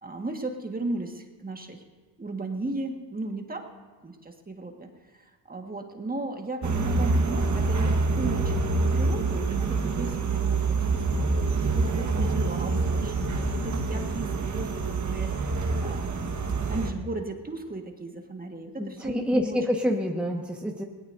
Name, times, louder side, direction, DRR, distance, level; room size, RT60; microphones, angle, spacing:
voice 1, 0.0-1.8 2.2-3.7 4.0-10.6 10.9-16.1 16.7-19.7, right 2 dB, 20° right, 3 dB, 1.7 m, -36 dB
sound 1, 6.6-16.9, right 3 dB, 40° right, 1.6 m, -26 dB
voice 2, 18.8-20.8, equal, 5° right, 0 dB, 1.5 m, -27 dB
21.5 x 18.0 x 2.7 m, 1.3 s
cardioid pair, 80°, 43 cm